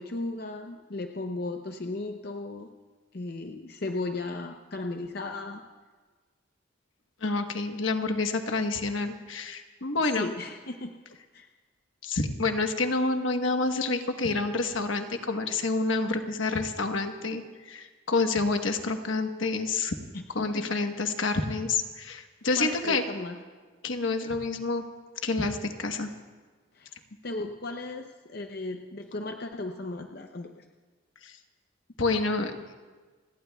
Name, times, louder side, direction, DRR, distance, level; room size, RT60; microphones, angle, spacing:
voice 1, 0.0-2.7 3.1-5.6 10.0-10.9 11.3-11.5 20.1-20.7 22.5-23.4 26.7-26.9 27.2-30.7, left 2 dB, 50° left, 4 dB, 0.6 m, -36 dB
voice 2, 7.2-10.3 12.0-17.4 17.7-20.0 20.3-23.0 23.8-24.8 25.2-26.1 31.2-31.4 32.0-32.6, left 3 dB, 75° left, 6 dB, 1.2 m, -28 dB
29.5 x 18.0 x 2.3 m, 1.4 s
head